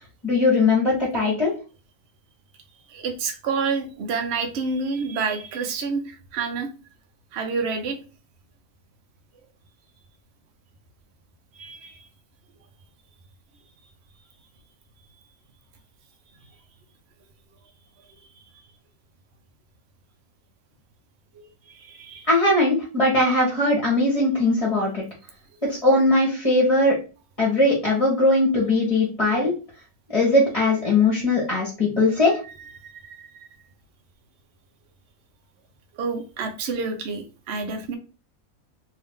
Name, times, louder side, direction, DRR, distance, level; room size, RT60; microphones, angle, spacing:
voice 1, 0.2-1.5 22.3-25.0 25.7-26.9 27.4-29.5 30.1-32.4, left 2 dB, 25° left, -4 dB, 1.1 m, -20 dB
voice 2, 2.9-6.7 7.3-8.0 11.6-12.0 21.7-22.3 32.8-33.5 36.0-38.0, right 4 dB, 60° right, 5 dB, 0.8 m, -29 dB
2.8 x 2.8 x 3.5 m, 0.33 s
omnidirectional pair, 1.5 m